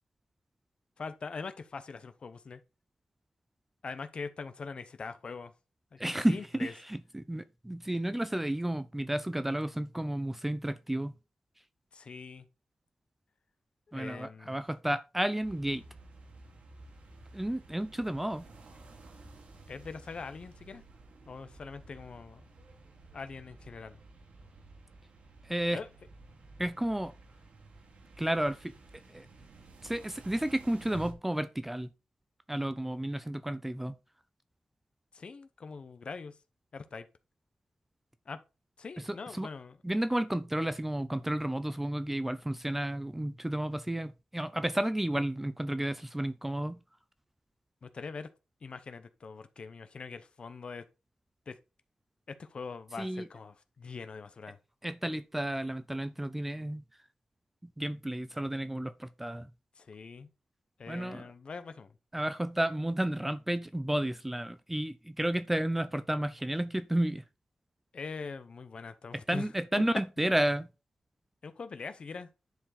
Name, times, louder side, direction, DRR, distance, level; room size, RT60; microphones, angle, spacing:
voice 1, 1.0-2.6 3.8-5.5 5.9-6.0 6.3-6.7 11.9-12.5 13.9-14.6 19.7-20.8 21.3-22.4 23.1-24.0 25.7-25.9 35.1-36.4 36.7-37.1 38.3-38.4 38.8-39.8 47.8-48.3 48.6-50.8 51.5-51.6 52.3-54.6 59.8-60.3 60.8-61.9 67.9-69.5 71.4-72.3, left 4 dB, 45° left, 0.8 m, -42 dB
voice 2, 6.0-11.1 13.9-15.8 17.3-18.4 25.5-25.8 26.6-27.1 28.2-28.7 29.1-29.3 29.8-31.9 32.5-33.9 39.3-39.5 39.8-46.8 53.0-53.3 54.8-56.8 57.6-59.5 60.9-61.2 62.1-67.2 69.3-70.7, right 1 dB, 10° right, 0.4 m, -32 dB
sound 1, 15.4-31.1, right 2 dB, 55° right, 1.8 m, -53 dB
10.5 x 4.7 x 4.2 m
wide cardioid pair, 160°, 2 cm